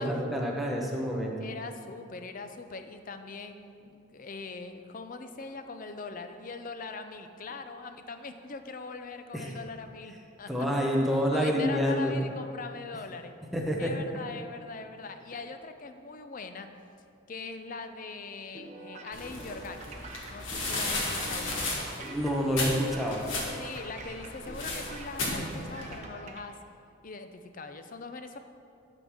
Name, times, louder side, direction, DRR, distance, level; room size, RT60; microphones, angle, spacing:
voice 1, 0.0-1.4 9.3-9.5 10.5-12.1 13.5-14.2 22.0-23.2, equal, ahead, -2 dB, 0.9 m, -28 dB
voice 2, 1.4-10.7 11.3-13.3 13.8-16.7 17.3-20.0 20.3-22.1 23.6-26.6 27.0-28.4, left 4 dB, 40° left, 8 dB, 0.5 m, -41 dB
sound 1, 18.5-26.4, right 2 dB, 35° right, 0.8 m, -46 dB
sound 2, 19.1-26.0, left 2 dB, 70° left, 1.7 m, -35 dB
11.5 x 3.9 x 6.1 m, 2.5 s
head